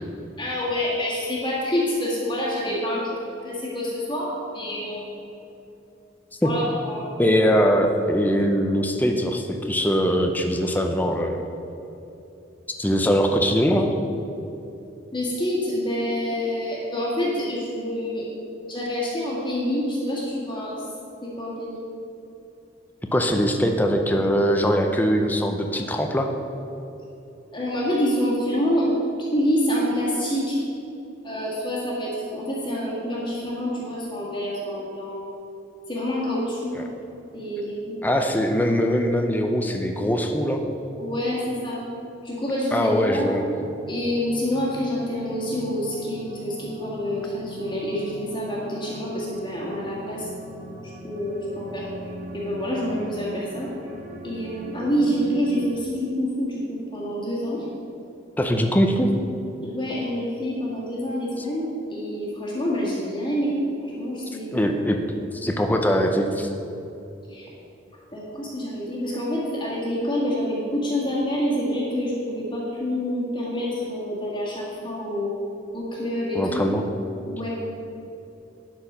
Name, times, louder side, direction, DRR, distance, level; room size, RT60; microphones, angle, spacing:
voice 1, 0.4-5.1 6.4-7.0 15.1-18.4 18.7-20.8 21.2-21.8 27.5-28.9 29.2-30.6 31.2-35.2 35.9-36.8 37.3-38.0 41.0-41.8 42.2-43.4 43.9-50.3 51.0-51.8 52.3-53.7 54.2-57.7 59.6-64.6 67.3-67.5 68.1-75.3 75.7-76.6 77.3-77.5, equal, 25° left, -6 dB, 1.7 m, -27 dB
voice 2, 7.2-11.4 12.8-13.9 23.1-26.3 36.7-36.8 38.0-40.6 42.7-43.4 58.4-59.1 64.5-65.0 65.3-66.5 76.3-76.9, equal, 10° left, 4 dB, 0.6 m, -21 dB
sound 1, 43.5-55.8, equal, 45° right, 0.9 m, -40 dB
11.5 x 4.7 x 5.3 m, 2.8 s
head